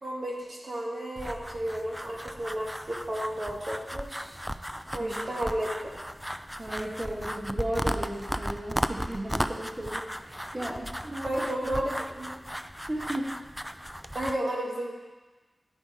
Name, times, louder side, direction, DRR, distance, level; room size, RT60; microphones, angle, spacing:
voice 1, 0.0-4.3 4.9-5.7 10.8-10.9 11.2-12.3 14.1-14.9, right 1 dB, 55° right, -3 dB, 1.8 m, -32 dB
sound 1, 1.2-14.4, equal, 5° right, 0.3 m, -36 dB
voice 2, 6.6-11.5 12.9-13.3, right 1 dB, 30° right, -5 dB, 1.3 m, -35 dB
10.0 x 5.0 x 4.8 m, 1.2 s
wide cardioid pair, 90°, 0 cm